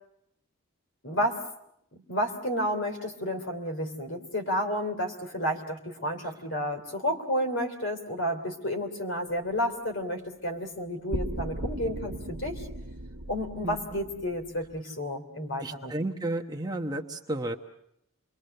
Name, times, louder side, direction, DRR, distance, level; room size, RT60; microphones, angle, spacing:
voice 1, 1.0-1.4 2.1-12.7 13.3-15.9, equal, 60° left, 5 dB, 3.2 m, -31 dB
sound 1, 11.1-14.8, right 1 dB, 85° right, 1.1 m, -37 dB
voice 2, 15.6-17.5, right 2 dB, 20° right, 3 dB, 1.0 m, -32 dB
28.0 x 22.5 x 6.7 m, 0.76 s
head